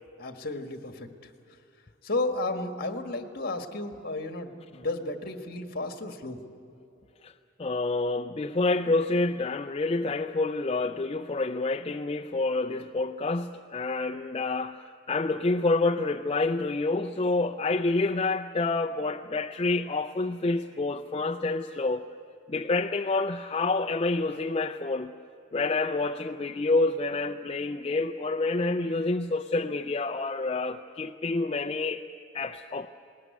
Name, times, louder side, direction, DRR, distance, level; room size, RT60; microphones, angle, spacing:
voice 1, 0.2-1.3 2.0-6.4, left 2 dB, 50° left, 6 dB, 1.7 m, -33 dB
voice 2, 7.6-22.1 22.5-25.2 25.5-32.0 32.3-32.9, left 3 dB, 30° left, 6 dB, 0.5 m, -28 dB
20.0 x 19.0 x 9.5 m, 2.7 s
head